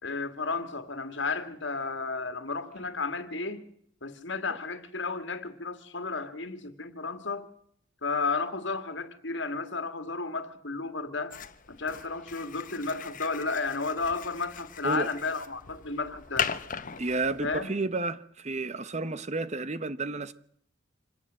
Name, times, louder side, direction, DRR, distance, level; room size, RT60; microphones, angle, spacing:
voice 1, 0.0-3.6 4.0-7.5 8.0-11.4 11.7-16.5 17.4-17.7, left 4 dB, 65° left, 2.2 m, -33 dB
sound 1, 11.3-17.7, left 7 dB, 45° left, 1.1 m, -38 dB
voice 2, 17.0-20.3, right 3 dB, 35° right, 1.0 m, -31 dB
26.5 x 18.0 x 7.7 m
head